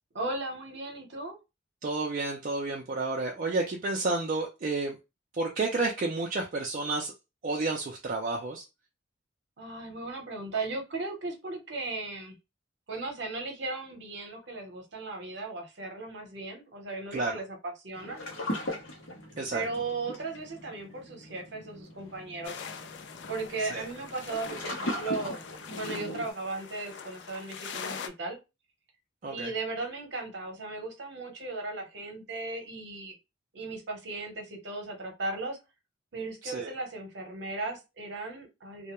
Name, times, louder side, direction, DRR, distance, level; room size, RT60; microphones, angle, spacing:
voice 1, 0.1-1.4 9.6-12.4 12.9-18.2 19.5-22.6 23.3-25.4 25.7-28.4 29.3-33.1 33.5-35.6 36.1-38.9, right 3 dB, 60° right, 3 dB, 0.8 m, -36 dB
voice 2, 1.8-5.0 5.4-7.1 7.4-8.6 17.1-17.4 19.4-19.6 23.7-23.9 29.2-29.5 36.4-36.7, right 3 dB, 40° right, 0 dB, 0.4 m, -30 dB
sound 1, 17.9-26.3, left 1 dB, 90° left, 0.8 m, -39 dB
sound 2, 22.4-28.1, left 6 dB, 60° left, 0.3 m, -43 dB
2.2 x 2.1 x 2.9 m, 0.26 s
head